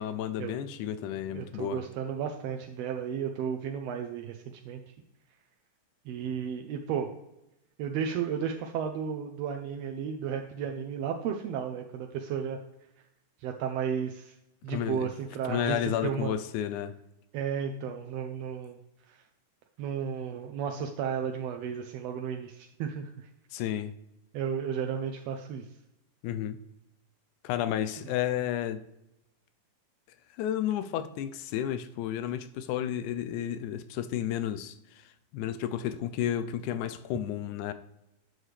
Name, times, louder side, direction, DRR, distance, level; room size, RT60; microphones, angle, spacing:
voice 1, 0.0-1.8 14.7-15.1 15.5-16.9 23.5-23.9 26.2-26.6 27.4-28.8 30.4-35.0 35.3-37.7, left 10 dB, 90° left, 12 dB, 2.1 m, -32 dB
voice 2, 1.3-4.8 6.1-7.1 7.8-12.6 13.4-14.3 14.6-16.4 17.3-18.8 19.1-19.2 19.8-23.3 24.3-25.7 28.0-28.1, right 7 dB, 80° right, 4 dB, 1.5 m, -33 dB
9.2 x 6.4 x 3.2 m, 0.88 s
omnidirectional pair, 3.4 m